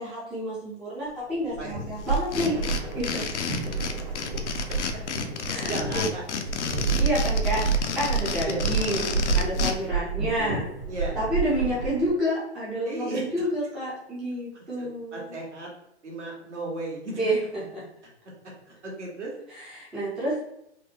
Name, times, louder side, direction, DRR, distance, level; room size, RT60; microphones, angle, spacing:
voice 1, 0.0-2.6 2.9-3.2 5.4-6.1 7.0-10.7 11.2-15.4 17.2-17.8 19.5-20.4, equal, 5° right, -8 dB, 0.3 m, -29 dB
sound 1, 1.3-12.1, right 5 dB, 55° right, 1.0 m, -29 dB
sound 2, 2.1-9.7, left 6 dB, 80° left, 0.5 m, -31 dB
voice 2, 5.5-6.4 8.5-8.6 10.9-11.1 12.8-13.5 14.8-15.7 16.0-17.3 18.7-19.3, right 2 dB, 80° right, -3 dB, 1.3 m, -35 dB
3.4 x 2.0 x 2.8 m, 0.77 s
figure-of-eight pair, 115°, 34 cm